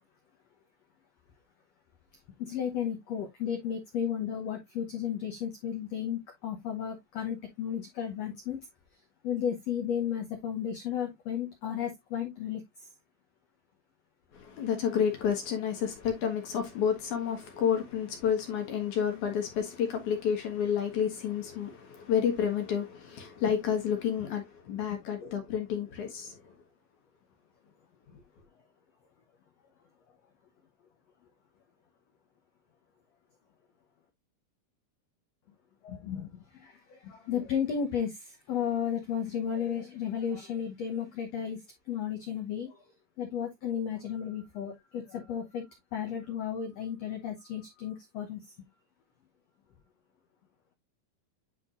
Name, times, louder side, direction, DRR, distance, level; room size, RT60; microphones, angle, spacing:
voice 1, 2.4-8.7 9.2-12.9 24.9-25.3 35.8-42.8 43.2-45.7 45.9-48.4, left 8 dB, 80° left, 1.4 m, -34 dB
voice 2, 14.3-26.6 28.1-28.2, left 8 dB, 60° left, 2.4 m, -30 dB
9.5 x 4.3 x 2.5 m
omnidirectional pair, 4.5 m